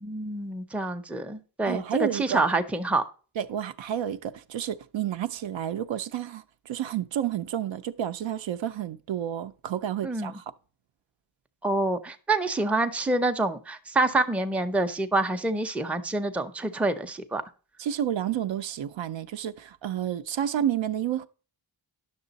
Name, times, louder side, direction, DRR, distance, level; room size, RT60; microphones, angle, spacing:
voice 1, 0.0-3.0 10.0-10.3 11.6-17.4, right 2 dB, 5° right, 0.5 m, -27 dB
voice 2, 1.6-2.4 3.4-10.4 17.8-21.3, right 10 dB, 70° right, 0.6 m, -30 dB
10.5 x 6.6 x 4.0 m
wide cardioid pair, 140°, 47 cm